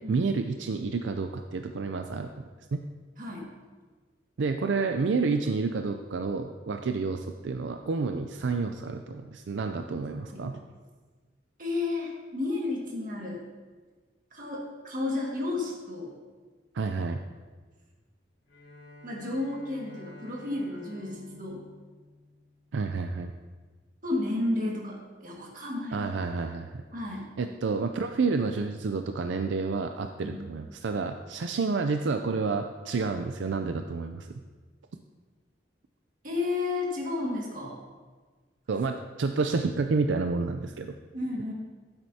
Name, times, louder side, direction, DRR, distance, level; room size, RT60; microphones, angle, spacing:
voice 1, 0.1-2.3 2.7-2.8 4.4-10.6 16.7-17.2 22.7-23.3 25.9-26.8 27.4-34.3 38.7-40.9, right 4 dB, 80° right, 6 dB, 0.4 m, -29 dB
voice 2, 3.2-3.5 10.3-10.5 11.6-13.4 14.3-16.2 19.0-21.6 24.0-26.1 26.9-27.3 30.2-30.5 36.2-37.8 41.1-41.5, left 2 dB, 45° right, -2 dB, 1.9 m, -32 dB
Bowed string instrument, 18.4-22.9, left 2 dB, 90° left, 2.8 m, -51 dB
14.5 x 7.9 x 2.8 m, 1.4 s
head